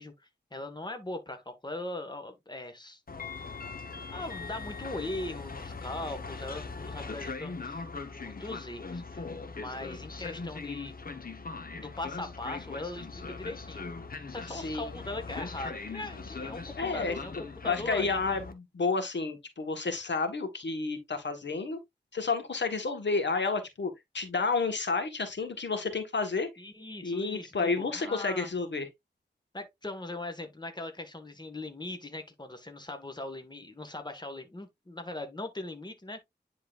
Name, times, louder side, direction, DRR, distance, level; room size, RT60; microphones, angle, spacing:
voice 1, 0.0-3.0 4.1-7.9 8.1-9.2 9.5-10.9 11.8-13.9 14.3-17.3 17.6-18.4 26.6-28.5 29.5-36.3, left 2 dB, 25° left, 1.5 m, -40 dB
Train, 3.1-18.5, left 4 dB, 55° left, 1.0 m, -40 dB
voice 2, 14.5-15.0 16.8-17.2 17.6-21.8 22.1-26.5 27.0-28.9, left 4 dB, 75° left, 1.4 m, -30 dB
10.0 x 4.0 x 2.4 m
wide cardioid pair, 75°, 18 cm